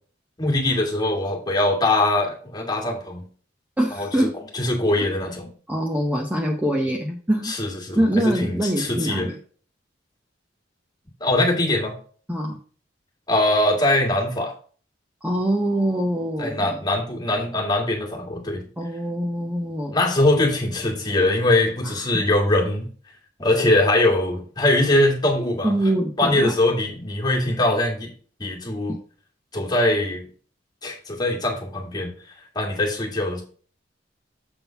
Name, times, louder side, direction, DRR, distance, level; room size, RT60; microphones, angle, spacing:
voice 1, 0.4-3.2 3.9-4.3 4.5-5.5 7.4-9.3 11.2-11.9 13.3-14.5 16.4-18.6 19.9-22.9 23.4-25.7 26.2-28.1 28.4-29.0 29.5-30.3 30.8-32.1 32.6-33.4, left 1 dB, 25° left, -1 dB, 2.0 m, -22 dB
voice 2, 3.8-4.3 5.0-5.1 5.7-7.5 7.9-9.3 12.3-12.6 15.2-16.8 18.8-19.9 21.8-22.0 25.6-26.5 28.9-29.0, right 1 dB, 10° right, 1 dB, 0.9 m, -24 dB
7.2 x 3.8 x 5.7 m, 0.42 s
head